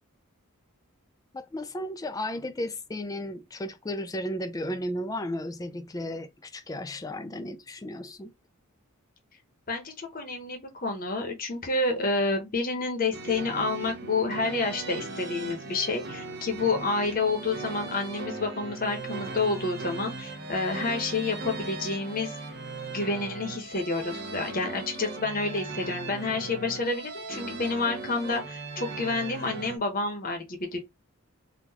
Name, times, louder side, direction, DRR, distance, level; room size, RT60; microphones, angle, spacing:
voice 1, 1.3-8.3, left 1 dB, 15° left, 0.3 m, -34 dB
voice 2, 9.7-22.3 22.9-30.8, left 3 dB, 40° left, 0.9 m, -29 dB
sound 1, 13.1-29.8, right 3 dB, 50° right, 0.8 m, -38 dB
3.8 x 2.3 x 2.8 m
head